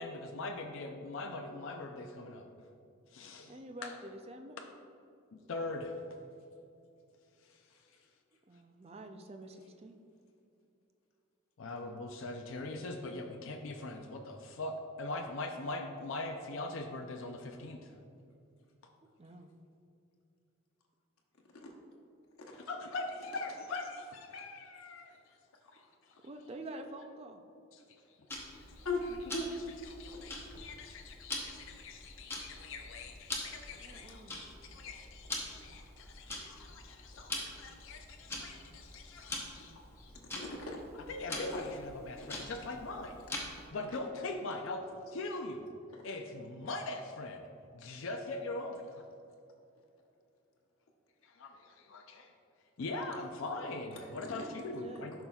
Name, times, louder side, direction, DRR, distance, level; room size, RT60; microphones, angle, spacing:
voice 1, 0.0-2.5 3.1-3.5 3.8-3.9 4.6-4.7 5.3-6.0 11.6-17.9 22.7-25.2 25.7-25.8 27.7-28.9 29.8-39.7 41.1-43.2 43.7-44.8 45.1-45.6 46.0-47.5 47.7-49.0 51.2-52.3 52.8-55.1, left 2 dB, 65° left, 3 dB, 0.5 m, -42 dB
voice 2, 3.5-4.6 8.5-10.0 19.2-19.5 26.2-27.4 33.8-34.4 54.6-55.1, right 1 dB, 30° right, 6 dB, 0.4 m, -47 dB
Tick-tock, 28.3-43.7, left 2 dB, 10° left, 0.8 m, -44 dB
voice 3, 28.8-29.5 30.1-30.2 34.1-34.2 36.3-36.6 39.2-39.3 39.7-40.8 41.3-41.4 42.1-42.4 45.9-46.0 54.0-54.5, left 2 dB, 85° left, -1 dB, 1.0 m, -41 dB
10.5 x 5.7 x 2.3 m, 2.6 s
head